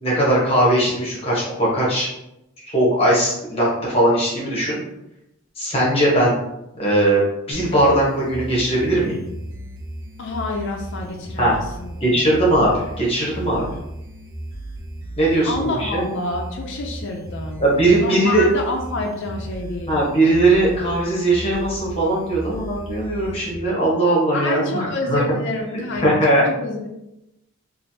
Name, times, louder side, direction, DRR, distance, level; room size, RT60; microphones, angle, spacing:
voice 1, 0.0-2.1 2.7-4.8 5.6-6.3 6.7-7.2 7.5-9.2 11.4-11.5 12.0-13.6 15.2-16.0 17.6-18.4 19.9-25.4 26.0-26.4, right 1 dB, 25° left, -5 dB, 1.0 m, -19 dB
sound 1, 7.5-23.5, right 1 dB, 60° right, 0.6 m, -35 dB
voice 2, 10.2-12.5 15.4-17.6 18.0-20.0 24.3-26.9, left 2 dB, 55° left, 1 dB, 0.4 m, -28 dB
3.1 x 2.5 x 2.7 m, 0.87 s
head